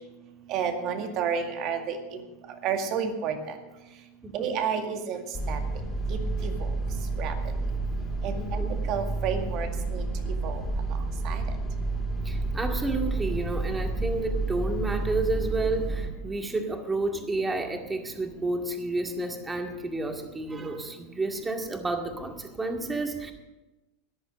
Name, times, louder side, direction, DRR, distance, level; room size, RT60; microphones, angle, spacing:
voice 1, 0.5-2.0 2.6-3.4 4.3-5.2 5.5-5.6 6.1-6.5 7.2-7.3 8.2-8.4 8.9-10.0 10.4-10.6 11.2-11.4, right 7 dB, 50° right, 5 dB, 2.1 m, -30 dB
voice 2, 4.2-4.6 8.4-8.8 12.2-23.3, right 2 dB, 15° right, 4 dB, 2.2 m, -31 dB
sound 1, 5.3-16.1, right 2 dB, 20° left, 3.6 m, -30 dB
14.0 x 10.5 x 6.5 m, 1.1 s
hypercardioid pair, 90°, 0 cm